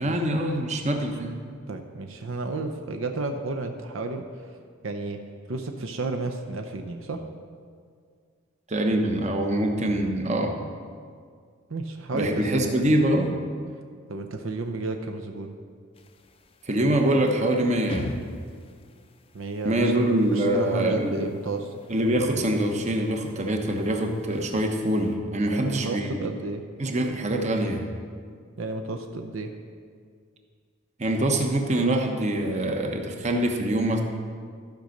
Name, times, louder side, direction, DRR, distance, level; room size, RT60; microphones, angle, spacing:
voice 1, 0.0-1.4 8.7-10.6 12.1-13.4 16.7-18.1 19.6-21.1 21.9-26.2 26.8-27.9 31.0-34.0, right 1 dB, 35° right, 3 dB, 0.9 m, -24 dB
voice 2, 1.7-4.6 4.8-5.2 5.5-7.2 11.7-12.8 14.1-15.6 19.3-19.9 20.3-21.7 25.4-26.6 28.6-29.5, right 3 dB, 70° right, 5 dB, 0.7 m, -32 dB
sound 1, 15.9-25.1, left 2 dB, 25° left, 0.5 m, -44 dB
13.0 x 5.2 x 6.5 m, 2.1 s
head